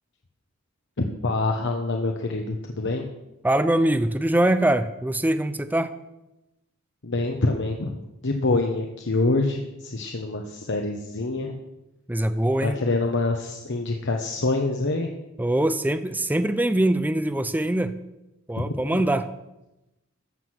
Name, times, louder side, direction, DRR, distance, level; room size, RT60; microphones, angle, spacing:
voice 1, 1.0-3.1 7.0-11.6 12.6-15.1 18.6-19.1, left 2 dB, 60° left, 3 dB, 1.1 m, -26 dB
voice 2, 3.4-5.9 12.1-12.8 15.4-17.9 18.5-19.3, right 1 dB, 10° right, 11 dB, 0.5 m, -23 dB
14.0 x 7.8 x 6.2 m, 0.95 s
head